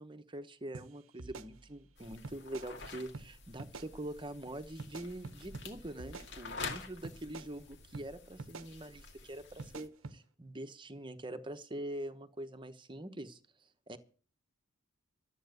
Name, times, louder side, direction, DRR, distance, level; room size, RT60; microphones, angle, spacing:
voice 1, 0.0-13.4 13.9-14.0, right 1 dB, 25° right, 9 dB, 1.1 m, -44 dB
sound 1, 0.7-0.9 1.2-1.9 2.2-2.7 3.1-3.3 3.6-3.9 4.8-5.7 6.0-6.7 7.0-7.5 7.9-8.1 8.4-8.7 9.6-10.2, right 3 dB, 85° right, 0.9 m, -47 dB
sound 2, 2.0-9.9, left 4 dB, 55° left, 2.1 m, -48 dB
13.0 x 8.5 x 8.0 m, 0.41 s
head